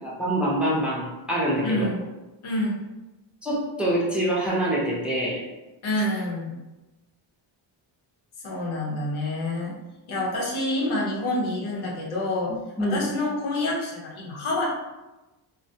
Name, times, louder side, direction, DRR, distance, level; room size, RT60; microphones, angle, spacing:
voice 1, 0.0-1.9 3.4-5.4 12.8-13.0, right 1 dB, ahead, -6 dB, 0.6 m, -25 dB
voice 2, 1.6-2.0 2.4-2.8 5.8-6.6 8.4-9.8 10.1-12.5 12.8-14.7, left 1 dB, 90° left, -3 dB, 0.8 m, -27 dB
2.2 x 2.1 x 2.7 m, 1.1 s
cardioid pair, 95°, 48 cm